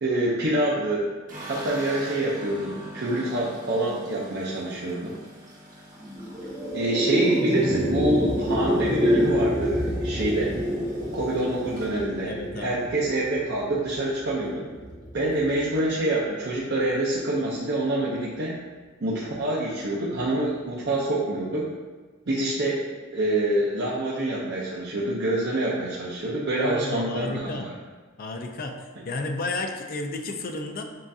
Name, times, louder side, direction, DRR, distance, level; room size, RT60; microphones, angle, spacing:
voice 1, 0.0-1.1 1.5-5.1 6.7-10.6 11.1-14.6 15.1-18.6 19.0-21.6 22.3-22.9 23.1-27.6, right 1 dB, 55° right, -7 dB, 0.7 m, -26 dB
sound 1, 1.3-13.5 13.9-14.5 14.7-14.8 15.1-15.9, equal, 40° right, 1.4 m, -44 dB
sound 2, 6.0-16.5, equal, 5° left, 0.7 m, -28 dB
voice 2, 12.2-12.9 26.6-27.7 28.2-28.7 29.0-30.8, left 2 dB, 45° left, 4 dB, 0.5 m, -32 dB
7.3 x 2.5 x 2.7 m, 1.4 s
head